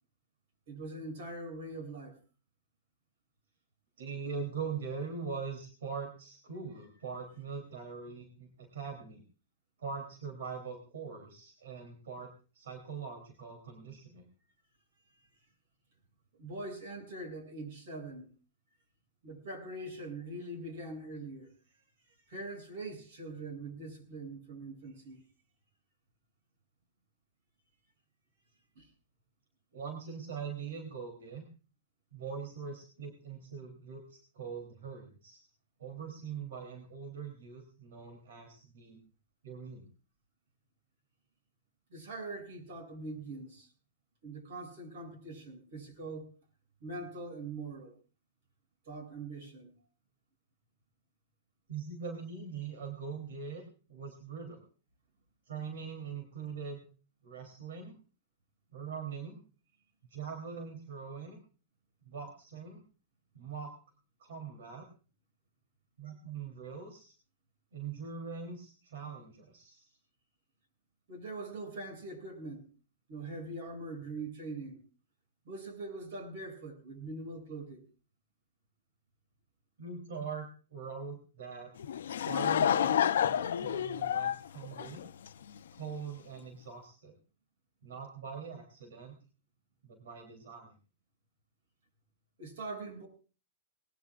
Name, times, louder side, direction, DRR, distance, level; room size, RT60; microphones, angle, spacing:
voice 1, 0.7-2.2 16.4-18.3 19.2-21.5 22.3-25.2 28.8-28.9 41.9-43.7 44.2-46.3 46.8-48.0 48.9-49.7 71.1-72.7 73.1-74.8 75.5-77.8 92.4-93.1, right 2 dB, 60° right, 7.6 m, -42 dB
voice 2, 4.0-9.2 9.8-14.3 29.7-31.4 32.1-35.5 35.8-39.0 39.4-39.9 51.7-54.6 55.4-56.9 57.2-58.0 58.7-59.4 60.1-61.4 62.0-62.8 63.3-63.7 64.2-64.9 66.0-67.1 67.7-70.0 79.8-81.7 82.1-85.0 85.7-87.1 87.8-89.2 89.8-90.8, right 5 dB, 85° right, 3.4 m, -42 dB
Laughter / Crowd, 81.8-85.6, left 9 dB, 85° left, 0.7 m, -29 dB
20.5 x 20.0 x 2.5 m
supercardioid pair, 155°, 0 cm